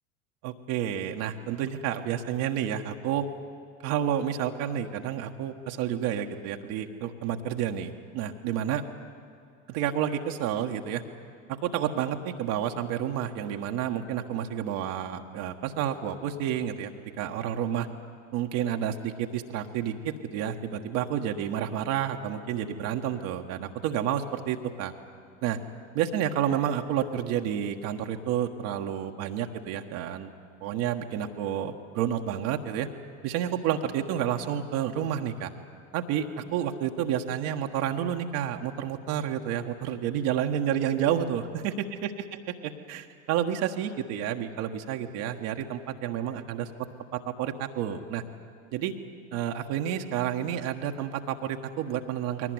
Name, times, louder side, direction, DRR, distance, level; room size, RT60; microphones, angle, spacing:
voice 1, 0.4-3.3 3.8-8.8 9.7-11.0 11.5-16.9 17.2-17.9 18.3-24.9 25.4-25.6 25.9-30.3 30.6-32.9 33.2-35.5 35.9-41.8 42.9-48.2 48.7-48.9 49.3-52.5, right 9 dB, 60° right, 3 dB, 1.5 m, -30 dB
21.5 x 18.5 x 9.6 m, 2.3 s
hypercardioid pair, 75°, 37 cm